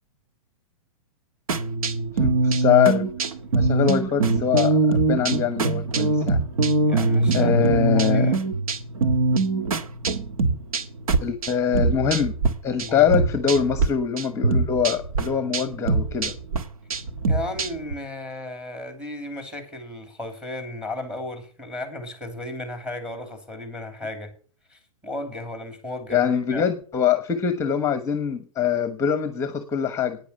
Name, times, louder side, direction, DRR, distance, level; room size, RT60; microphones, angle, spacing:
sound 1, 1.5-12.5 12.8-13.9 14.2-17.9, right 3 dB, 80° right, 1.6 m, -22 dB
voice 1, 2.1-3.0 3.5-6.4 7.3-8.3 11.2-12.3 12.6-16.3 26.1-30.2, left 8 dB, 15° left, 1.1 m, -23 dB
voice 2, 6.9-7.6 7.9-8.4 12.8-13.1 17.3-24.3 24.7-26.2 26.5-26.7, left 2 dB, 5° right, 2.8 m, -34 dB
10.0 x 9.6 x 6.8 m
hypercardioid pair, 130°, 18 cm